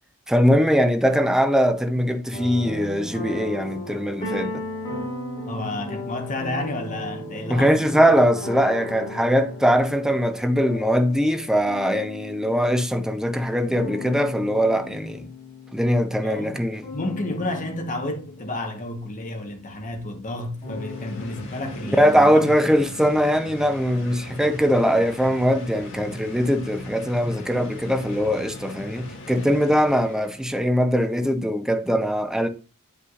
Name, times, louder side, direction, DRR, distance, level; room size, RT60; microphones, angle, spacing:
voice 1, 0.3-4.6 7.5-15.3 15.7-16.8 22.0-32.5, equal, 5° right, 0.5 m, -21 dB
sound 1, 2.3-20.2 20.6-21.4, left 2 dB, 20° left, 3.7 m, -36 dB
voice 2, 5.5-7.9 16.2-16.6 16.9-22.5, left 1 dB, 35° left, 1.1 m, -31 dB
sound 2, 20.5-30.6, left 1 dB, 60° left, 1.5 m, -39 dB
7.8 x 5.6 x 2.4 m
head